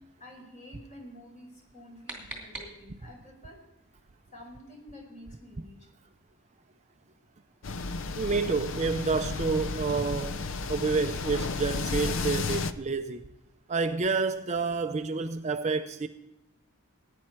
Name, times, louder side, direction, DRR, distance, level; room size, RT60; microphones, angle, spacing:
voice 1, 0.2-3.6 4.3-5.8, left 1 dB, 35° left, 4.6 m, -49 dB
sound 1, 1.6-3.2, right 2 dB, 5° right, 2.5 m, -44 dB
sound 2, 7.6-12.7, left 4 dB, 60° left, 0.6 m, -33 dB
voice 2, 8.1-10.4 10.7-13.2 13.7-16.1, right 4 dB, 30° right, 0.5 m, -29 dB
17.0 x 9.7 x 4.5 m
head